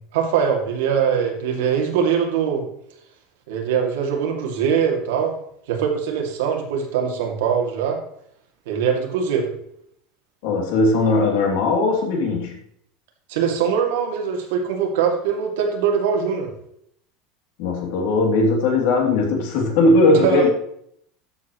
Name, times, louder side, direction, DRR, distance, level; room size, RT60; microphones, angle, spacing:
voice 1, 0.1-2.6 3.5-5.3 5.7-8.0 8.7-9.5 13.3-16.5 20.1-20.5, right 7 dB, 90° right, 2 dB, 2.5 m, -22 dB
voice 2, 10.4-12.6 17.6-20.5, left 2 dB, 60° left, 0 dB, 2.8 m, -18 dB
12.5 x 7.6 x 3.1 m, 0.69 s
cardioid pair, 180°, 0 cm